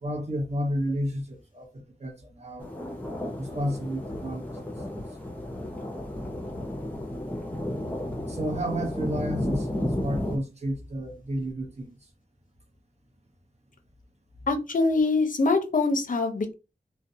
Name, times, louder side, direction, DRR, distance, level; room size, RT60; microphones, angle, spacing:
voice 1, 0.0-2.7 3.4-4.7 8.2-11.9, equal, 45° right, 0.8 m, -32 dB
sound 1, 2.6-10.4, left 1 dB, 10° left, 0.6 m, -33 dB
voice 2, 14.5-16.5, left 3 dB, 55° left, 0.5 m, -24 dB
2.3 x 2.1 x 2.7 m
wide cardioid pair, 65°, 16 cm